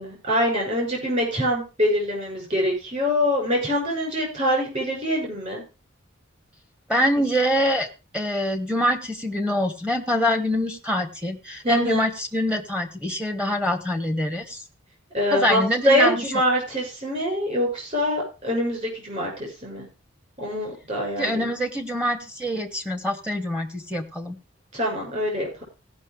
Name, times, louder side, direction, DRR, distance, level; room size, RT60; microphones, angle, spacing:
voice 1, 0.0-5.6 11.6-12.0 15.1-19.9 20.4-21.5 24.7-25.6, equal, 35° right, -1 dB, 6.3 m, -24 dB
voice 2, 6.9-7.9 8.1-14.6 15.3-16.2 21.2-24.4, equal, 5° right, 4 dB, 1.2 m, -25 dB
17.0 x 5.9 x 4.6 m, 0.31 s
head